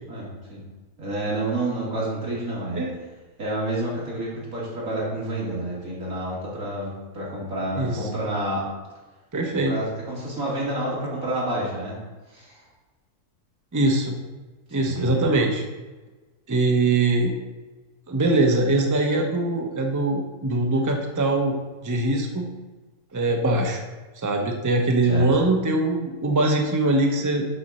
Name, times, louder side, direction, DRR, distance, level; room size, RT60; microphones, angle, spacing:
voice 1, 0.1-0.6 1.0-2.9 3.4-8.6 9.5-12.0 12.3-12.6 14.7-15.2 25.1-25.3, right 1 dB, 65° right, -6 dB, 3.2 m, -29 dB
voice 2, 9.3-9.7 13.7-14.2 14.7-15.6 16.5-17.4 18.1-21.6 21.8-22.5 23.1-23.8 24.2-27.4, right 2 dB, 15° right, 2 dB, 0.8 m, -22 dB
8.0 x 4.5 x 6.6 m, 1.2 s
omnidirectional pair, 1.6 m